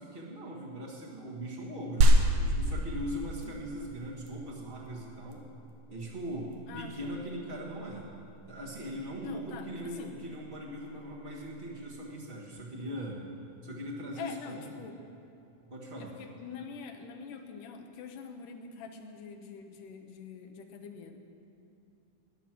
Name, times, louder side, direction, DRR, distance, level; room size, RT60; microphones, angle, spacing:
voice 1, 0.0-5.5 5.9-8.1 8.4-13.2 13.6-14.6 15.7-16.1, equal, 45° right, -6 dB, 0.7 m, -40 dB
sound 1, 2.0-12.0, right 1 dB, 85° right, 2.6 m, -31 dB
voice 2, 6.7-7.1 9.2-10.1 14.2-15.0 16.0-21.2, left 6 dB, 85° left, 5 dB, 2.5 m, -45 dB
14.5 x 10.5 x 6.1 m, 2.6 s
omnidirectional pair, 3.7 m